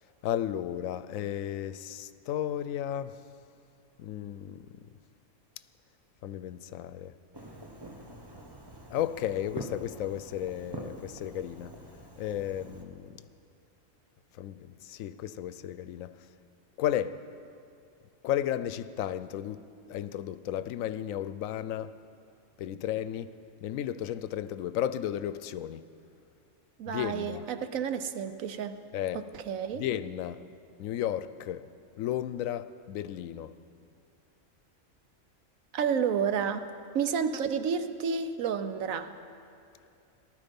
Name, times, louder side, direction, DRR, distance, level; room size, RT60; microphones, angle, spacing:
voice 1, 0.2-3.2 4.0-4.6 6.2-7.1 8.9-11.8 12.2-13.2 14.4-16.2 16.8-17.2 18.2-21.9 22.6-23.3 23.6-25.9 26.9-27.5 28.9-29.2 29.8-30.5 30.8-31.7 32.0-33.5, left 11 dB, 85° left, 1.0 m, -34 dB
Fireworks, 7.3-12.8, right 1 dB, 20° right, 1.1 m, -45 dB
voice 2, 26.8-28.8 29.1-29.8 35.7-36.6 36.9-39.1, right 7 dB, 90° right, 1.2 m, -30 dB
18.5 x 13.0 x 5.3 m
omnidirectional pair, 1.4 m